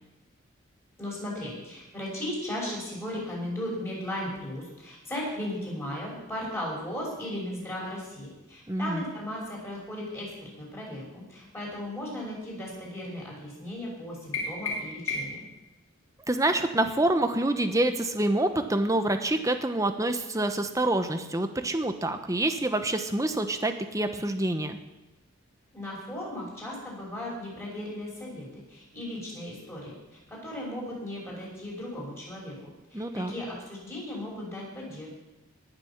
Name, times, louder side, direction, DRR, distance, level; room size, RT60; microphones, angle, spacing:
voice 1, 1.0-15.4 25.7-29.9 30.3-35.1, left 1 dB, 10° left, -4 dB, 5.8 m, -36 dB
voice 2, 8.7-9.0 16.3-24.8 32.9-33.3, right 1 dB, 15° right, 7 dB, 1.0 m, -27 dB
sound 1, 14.3-15.5, left 3 dB, 70° left, 3.4 m, -33 dB
19.5 x 7.0 x 7.2 m, 1.0 s
head